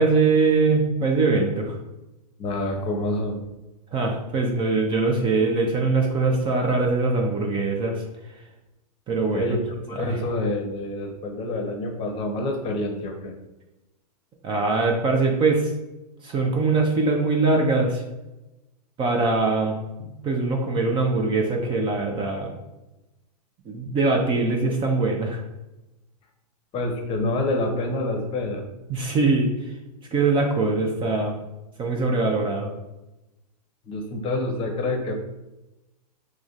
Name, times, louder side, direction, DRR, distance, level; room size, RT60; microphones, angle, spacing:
voice 1, 0.0-1.8 3.9-8.0 8.3-8.4 9.1-9.6 9.9-10.2 14.4-15.7 16.2-18.0 19.0-22.5 23.6-25.4 28.9-29.7 30.1-31.4 31.8-32.7, right 3 dB, 25° right, 2 dB, 0.6 m, -22 dB
voice 2, 2.4-3.4 9.3-13.3 26.7-28.6 33.9-35.1, left 2 dB, 25° left, 3 dB, 0.8 m, -27 dB
4.9 x 3.2 x 2.4 m, 1.0 s
hypercardioid pair, 110°, 21 cm